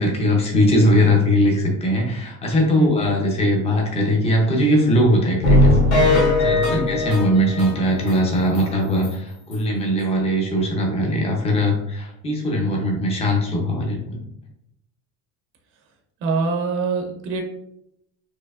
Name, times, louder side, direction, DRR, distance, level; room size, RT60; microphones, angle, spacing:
voice 1, 0.0-14.2, equal, 15° left, 0 dB, 0.5 m, -20 dB
sound 1, 5.4-8.2 8.6-8.7 9.0-9.1 9.5-9.6, left 1 dB, 40° left, 1.2 m, -18 dB
voice 2, 16.2-17.4, right 3 dB, 35° right, 2 dB, 0.5 m, -23 dB
4.4 x 2.6 x 2.4 m, 0.77 s
cardioid pair, 175°, 37 cm